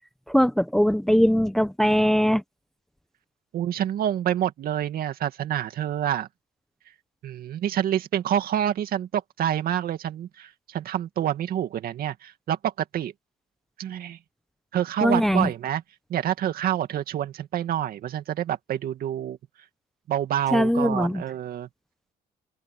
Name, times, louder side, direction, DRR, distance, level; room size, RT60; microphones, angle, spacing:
voice 1, 0.3-2.4 15.0-15.5 20.5-21.2, equal, ahead, 0.8 m, -21 dB
voice 2, 3.5-6.3 7.2-13.1 13.8-14.2 14.7-15.8 16.1-19.4 20.1-21.7, right 10 dB, 60° right, 2.2 m, -27 dB
open air
cardioid pair, 110°, 17 cm